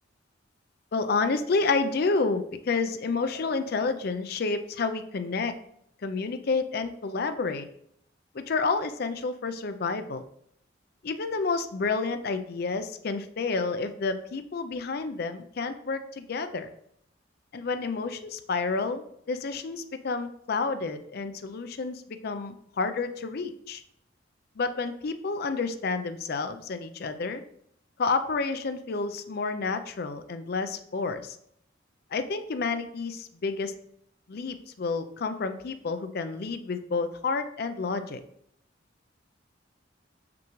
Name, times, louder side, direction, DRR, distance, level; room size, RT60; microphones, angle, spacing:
voice 1, 0.9-5.5 6.0-7.7 8.3-10.2 11.0-16.7 17.5-23.8 24.6-27.4 28.0-31.4 32.1-33.7 34.3-38.2, left 4 dB, 50° left, 9 dB, 0.4 m, -30 dB
6.0 x 5.9 x 3.1 m, 0.72 s
head